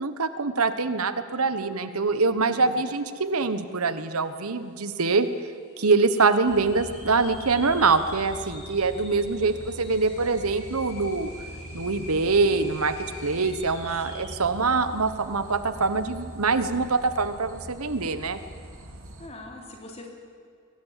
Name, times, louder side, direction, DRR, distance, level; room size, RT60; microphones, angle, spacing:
voice 1, 0.0-5.3 5.8-11.3 11.7-12.9 13.2-18.4, right 4 dB, 85° right, 11 dB, 1.2 m, -24 dB
sound 1, 3.5-3.6 3.8-4.3 4.8-4.9 5.7-14.4, left 1 dB, 55° left, 7.4 m, -46 dB
sound 2, 6.5-19.3, equal, 70° right, 2.8 m, -43 dB
voice 2, 14.0-14.7 19.2-20.1, left 1 dB, 30° left, 1 dB, 3.3 m, -44 dB
22.5 x 18.5 x 7.5 m, 2.3 s
head